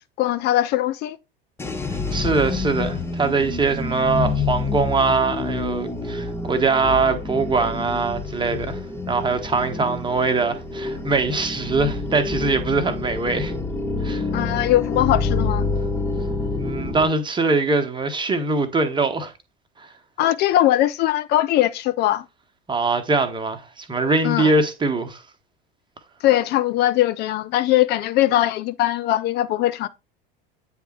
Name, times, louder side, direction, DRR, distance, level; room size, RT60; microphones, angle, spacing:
voice 1, 0.2-1.2 14.3-15.7 20.2-22.2 24.2-24.5 26.2-29.9, left 13 dB, 35° left, 0.6 m, -20 dB
sound 1, 1.6-17.1, left 3 dB, 10° left, 0.9 m, -27 dB
voice 2, 2.1-8.8 9.1-13.5 14.0-14.2 16.6-19.3 19.8-19.9 22.7-25.2, right 3 dB, 15° right, 1.1 m, -22 dB
9.0 x 3.5 x 4.5 m
figure-of-eight pair, 75°, 29 cm